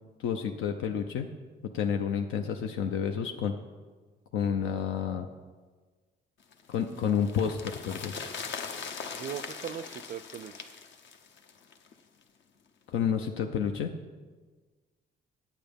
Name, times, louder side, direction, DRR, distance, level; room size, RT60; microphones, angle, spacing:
voice 1, 0.2-1.3 1.6-3.5 4.3-5.3 6.7-8.1 12.9-13.9, left 7 dB, 90° left, 4 dB, 0.6 m, -30 dB
sound 1, 6.5-11.9 12.2-12.3, left 6 dB, 70° left, 0.9 m, -41 dB
voice 2, 9.1-10.8, right 9 dB, 50° right, 17 dB, 0.4 m, -39 dB
9.1 x 8.5 x 5.2 m, 1.4 s
cardioid pair, 90°, 20 cm